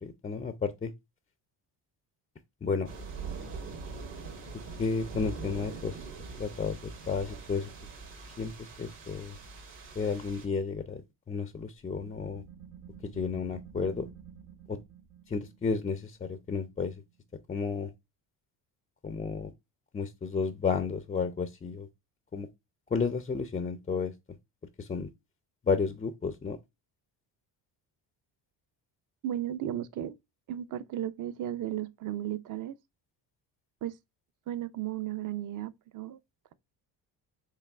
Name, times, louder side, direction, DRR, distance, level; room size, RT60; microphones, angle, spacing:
voice 1, 0.0-0.9 2.6-2.9 4.8-6.0 6.4-6.8 7.1-7.7 8.4-9.4 10.0-12.4 13.0-14.1 14.7-14.8 15.3-16.9 17.5-17.9 19.0-19.5 19.9-21.9 22.3-22.5 22.9-24.1 24.8-25.1 25.6-26.6, left 5 dB, 20° left, 0.3 m, -32 dB
sound 1, 2.8-10.5, right 4 dB, 60° right, 1.7 m, -42 dB
sound 2, 11.8-17.1, right 8 dB, 85° right, 1.1 m, -51 dB
voice 2, 29.2-30.1 30.5-32.7 33.8-33.9 34.5-36.2, right 12 dB, 40° right, 0.5 m, -35 dB
4.7 x 3.1 x 2.3 m
supercardioid pair, 70°, 50 cm